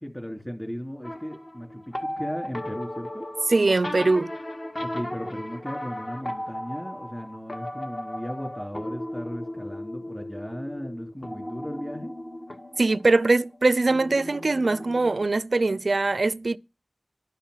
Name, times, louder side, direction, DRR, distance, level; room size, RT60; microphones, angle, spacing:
voice 1, 0.0-3.3 4.8-12.1, equal, 10° left, 2.9 m, -36 dB
sound 1, 1.0-15.3, left 1 dB, 35° left, 1.4 m, -36 dB
voice 2, 3.5-4.3 12.8-16.6, right 3 dB, 65° right, 0.4 m, -22 dB
12.0 x 5.6 x 6.4 m
wide cardioid pair, 60°, 0 cm